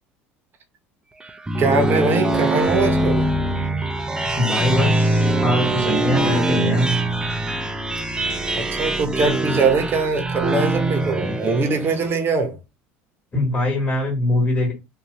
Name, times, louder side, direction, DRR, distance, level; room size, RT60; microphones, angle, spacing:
sound 1, 1.2-12.1, right 2 dB, 10° right, 0.4 m, -22 dB
voice 1, 1.6-3.3 8.5-12.6, right 4 dB, 35° right, 0.8 m, -22 dB
voice 2, 4.4-6.9 13.3-14.7, left 1 dB, 25° left, 1.4 m, -22 dB
2.7 x 2.4 x 3.0 m
supercardioid pair, 95°, 6 cm